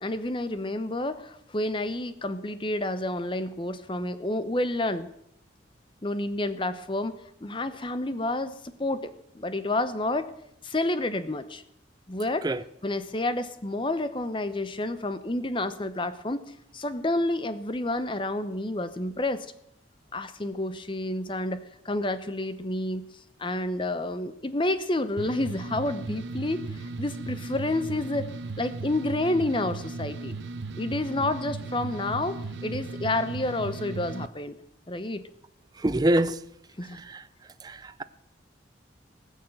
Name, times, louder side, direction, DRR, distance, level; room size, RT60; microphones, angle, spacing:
voice 1, 0.0-5.1 6.0-7.1 7.4-9.1 9.3-10.3 10.6-11.6 12.1-12.5 12.8-19.5 20.1-23.1 23.4-26.6 27.0-28.3 28.6-30.4 30.8-34.5 34.9-35.2 36.8-37.0, left 2 dB, 25° left, 0.8 m, -29 dB
sound 1, 25.2-34.3, right 3 dB, 70° right, 0.8 m, -36 dB
voice 2, 35.8-36.4 36.9-37.2 37.6-38.0, right 1 dB, 20° right, 0.4 m, -25 dB
18.5 x 6.5 x 7.9 m
head